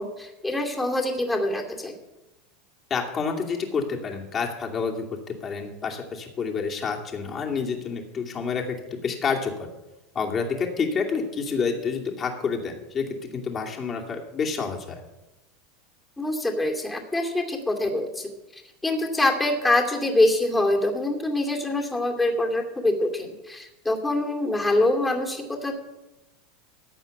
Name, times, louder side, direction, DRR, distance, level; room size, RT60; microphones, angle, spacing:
voice 1, 0.0-1.9 16.2-18.3 18.8-25.7, left 1 dB, 10° left, 2 dB, 2.4 m, -24 dB
voice 2, 2.9-5.0 5.4-9.7 10.1-14.9, left 5 dB, 30° left, 1 dB, 2.5 m, -28 dB
15.0 x 5.6 x 9.4 m, 1.0 s
supercardioid pair, 125°, 0 cm